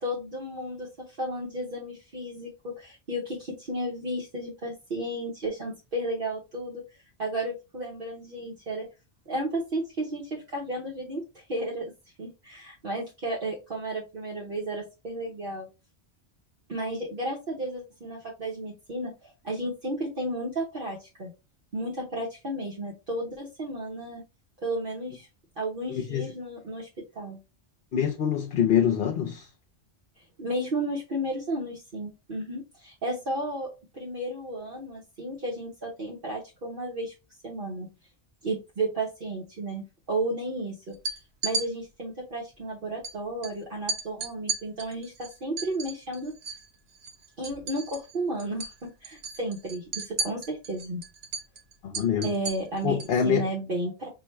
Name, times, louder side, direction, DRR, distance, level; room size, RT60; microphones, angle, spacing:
voice 1, 0.0-8.9 9.3-11.9 12.2-15.7 16.7-21.3 21.7-24.2 24.6-25.3 25.6-26.9 27.1-27.4 30.4-37.1 37.4-37.9 38.4-41.0 41.4-46.3 47.4-51.0 52.2-53.0 53.2-54.1, right 1 dB, 55° right, 1.2 m, -33 dB
voice 2, 25.9-26.3 27.9-29.5 51.8-52.3 52.8-53.5, left 8 dB, 65° left, 0.8 m, -25 dB
sound 1, 40.9-41.7 43.0-43.1 43.4-43.5 43.9-46.7 46.9-48.1 48.4-48.7 49.0-53.2, right 4 dB, 80° right, 1.2 m, -34 dB
6.1 x 2.2 x 3.1 m
omnidirectional pair, 1.1 m